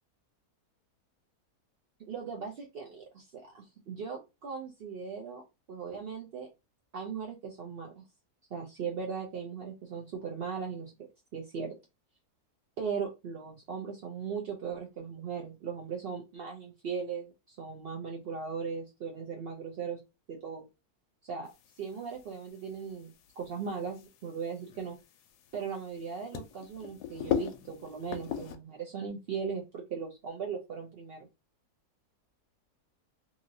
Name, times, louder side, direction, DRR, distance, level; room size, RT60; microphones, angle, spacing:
voice 1, 2.1-6.5 6.9-8.0 8.5-10.9 11.3-11.8 12.8-20.0 20.3-20.6 21.2-21.5 21.8-25.0 25.5-31.3, right 6 dB, 70° right, 0 dB, 0.5 m, -38 dB
sound 1, 21.5-28.6, left 10 dB, 90° left, 1.1 m, -40 dB
2.9 x 2.8 x 2.6 m, 0.25 s
omnidirectional pair, 1.7 m